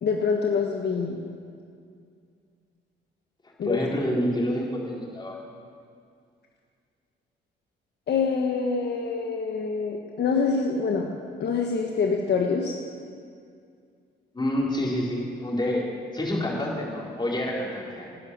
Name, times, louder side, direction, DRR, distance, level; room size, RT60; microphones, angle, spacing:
voice 1, 0.0-1.2 3.6-3.8 8.1-11.1 11.4-12.7, left 5 dB, 60° left, 1 dB, 1.5 m, -25 dB
voice 2, 3.6-5.4 14.3-15.9 16.1-18.1, left 1 dB, 20° left, -3 dB, 4.5 m, -27 dB
12.5 x 11.0 x 9.5 m, 2.2 s
cardioid pair, 90°, 20 cm